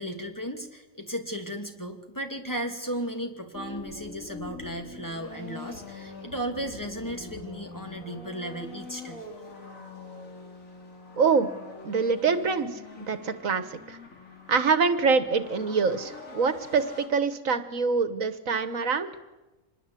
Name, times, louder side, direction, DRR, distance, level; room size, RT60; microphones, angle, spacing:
voice 1, 0.0-9.3, right 1 dB, 15° left, 3 dB, 2.5 m, -35 dB
sound 1, 3.5-17.1, left 3 dB, 75° left, 3.4 m, -44 dB
voice 2, 11.2-11.5 11.8-12.7 13.0-14.0 14.5-19.1, right 5 dB, 75° right, 11 dB, 1.7 m, -25 dB
25.5 x 21.0 x 8.5 m, 1.1 s
omnidirectional pair, 1.4 m